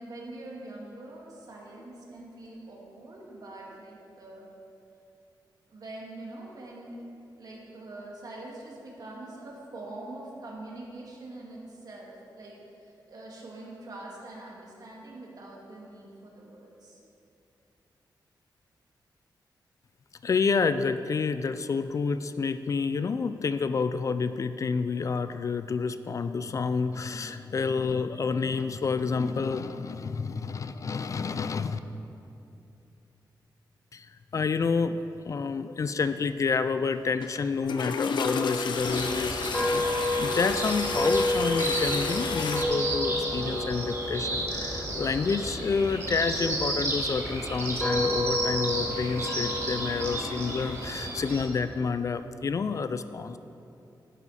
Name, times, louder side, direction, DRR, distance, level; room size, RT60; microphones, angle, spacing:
voice 1, 0.0-4.5 5.7-7.0 7.4-17.0, right 2 dB, 55° right, -3 dB, 2.0 m, -44 dB
voice 2, 20.2-31.8 33.9-34.1 34.3-35.0 35.2-39.8 40.2-53.4, left 5 dB, 45° left, 11 dB, 0.3 m, -29 dB
Toilet flush, 37.2-37.4 37.6-42.6, left 5 dB, 75° left, 0.6 m, -33 dB
sound 1, 38.2-46.4 47.1-50.6, left 1 dB, 15° left, 1.4 m, -31 dB
sound 2, 38.7-51.4, right 1 dB, 35° right, 1.9 m, -33 dB
11.0 x 9.1 x 4.2 m, 2.7 s
wide cardioid pair, 135°, 8 cm